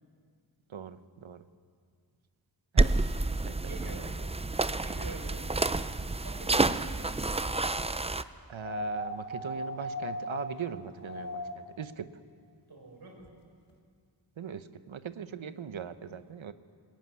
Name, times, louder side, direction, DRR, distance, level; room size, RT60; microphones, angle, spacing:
voice 1, 0.7-1.4 2.7-2.9 3.4-3.9 8.5-12.1 14.4-16.5, right 8 dB, 85° right, 12 dB, 1.0 m, -40 dB
sound 1, 2.8-8.2, right 2 dB, 15° right, 0.5 m, -29 dB
voice 2, 3.7-4.1 4.8-5.9 6.2-6.9 12.7-13.2 15.3-15.6, right 2 dB, 55° right, -1 dB, 6.2 m, -46 dB
sound 2, 8.6-11.8 13.2-13.3, left 1 dB, 45° left, 1.8 m, -37 dB
20.5 x 16.5 x 9.6 m, 2.2 s
wide cardioid pair, 90°, 46 cm